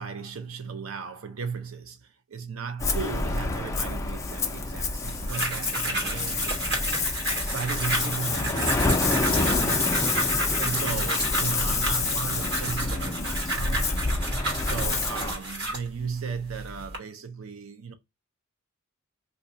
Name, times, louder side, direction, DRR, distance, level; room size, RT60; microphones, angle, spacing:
voice 1, 0.0-6.9 7.4-10.0 10.6-13.9 14.6-17.9, right 6 dB, 80° right, 0.6 m, -36 dB
Ocean, 2.8-15.3, left 3 dB, 15° left, 0.4 m, -28 dB
sound 1, 5.1-15.9 16.5-17.0, right 1 dB, 55° right, 1.2 m, -31 dB
2.7 x 2.3 x 3.7 m
head